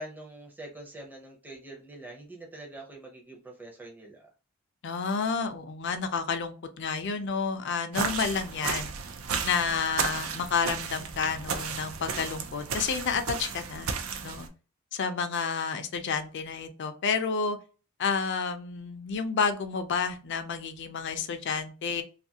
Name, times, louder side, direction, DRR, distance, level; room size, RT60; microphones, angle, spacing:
voice 1, 0.0-4.3, right 1 dB, 10° right, -1 dB, 0.6 m, -44 dB
voice 2, 4.8-8.9 9.4-13.9 14.2-14.5 14.9-17.6 18.0-22.0, left 5 dB, 60° left, 8 dB, 0.5 m, -30 dB
sound 1, 7.9-14.5, right 6 dB, 80° right, 0.4 m, -34 dB
2.6 x 2.4 x 2.7 m, 0.35 s
head